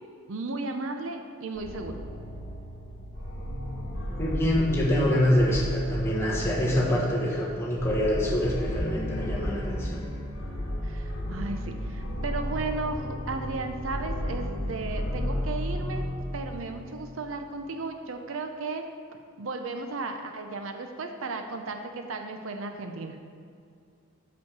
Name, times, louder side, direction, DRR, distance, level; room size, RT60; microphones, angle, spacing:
voice 1, 0.3-2.0 10.8-16.1 16.3-18.9 19.4-23.2, right 3 dB, 75° right, 6 dB, 0.6 m, -35 dB
sound 1, 1.6-17.2, equal, 65° left, 1.3 m, -33 dB
voice 2, 4.2-10.0, left 1 dB, 15° left, -6 dB, 1.4 m, -25 dB
6.2 x 5.4 x 6.7 m, 2.3 s
head